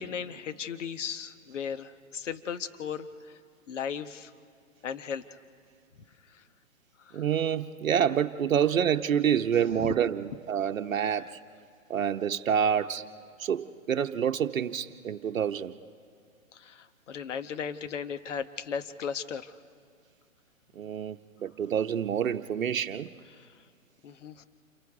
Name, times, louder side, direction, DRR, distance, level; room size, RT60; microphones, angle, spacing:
voice 1, 0.0-3.4 3.7-4.3 4.8-5.2 6.3-6.4 7.0-7.2 9.8-9.9 16.5-19.5 23.3-23.5 24.0-24.4, left 7 dB, 60° left, 10 dB, 1.2 m, -36 dB
voice 2, 7.1-11.4 11.9-13.0 13.4-15.7 20.8-21.2 21.4-23.1, right 8 dB, 75° right, 7 dB, 0.9 m, -27 dB
28.5 x 28.5 x 3.6 m, 2.3 s
figure-of-eight pair, 130°, 41 cm